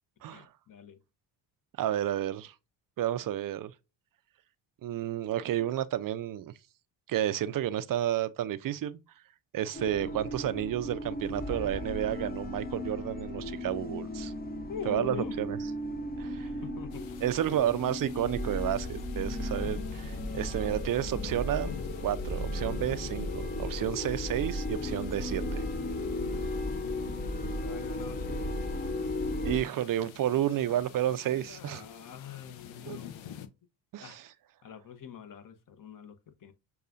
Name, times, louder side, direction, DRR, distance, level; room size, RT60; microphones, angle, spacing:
voice 1, 0.3-1.0 10.0-10.5 14.7-15.4 16.4-17.2 27.0-28.7 31.5-33.4 34.0-34.2 34.6-36.5, left 7 dB, 40° left, 0.9 m, -44 dB
voice 2, 1.8-2.5 3.0-3.7 4.8-6.5 7.1-9.0 9.5-14.3 14.9-15.6 16.2-16.5 17.2-21.7 22.0-25.6 29.4-31.8 32.9-33.0 33.9-34.2, right 12 dB, 45° right, 0.5 m, -31 dB
sound 1, 9.7-29.6, left 1 dB, 20° left, 0.6 m, -35 dB
sound 2, 16.9-33.5, left 10 dB, 70° left, 0.7 m, -48 dB
6.7 x 2.3 x 2.5 m
supercardioid pair, 75°, 49 cm